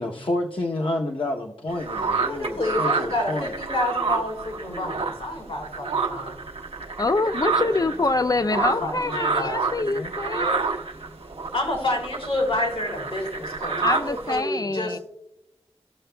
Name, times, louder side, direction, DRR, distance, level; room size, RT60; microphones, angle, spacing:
voice 1, 0.0-3.5 9.0-9.5 9.8-10.1, left 1 dB, 55° left, 0.8 m, -30 dB
sound 1, 1.7-5.4 5.6-14.4, right 4 dB, 75° right, 0.9 m, -29 dB
voice 2, 2.2-6.4 7.5-7.6 8.5-9.8 11.5-15.0, left 1 dB, 85° left, 3.7 m, -29 dB
voice 3, 7.0-10.6 13.8-15.0, left 2 dB, 35° left, 0.4 m, -25 dB
19.0 x 6.6 x 2.2 m
wide cardioid pair, 75°, 10 cm